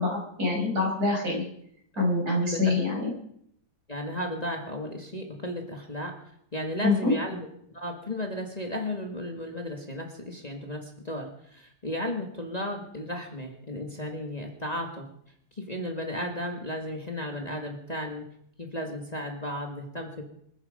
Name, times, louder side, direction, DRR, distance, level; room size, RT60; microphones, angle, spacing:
voice 1, 0.0-1.4 2.0-3.1 6.8-7.1, left 2 dB, 65° right, -1 dB, 6.2 m, -25 dB
voice 2, 3.9-6.1 6.5-15.1 15.5-18.2 18.6-20.2, left 1 dB, 25° left, 2 dB, 2.0 m, -34 dB
26.5 x 9.7 x 5.1 m, 0.69 s
omnidirectional pair, 1.8 m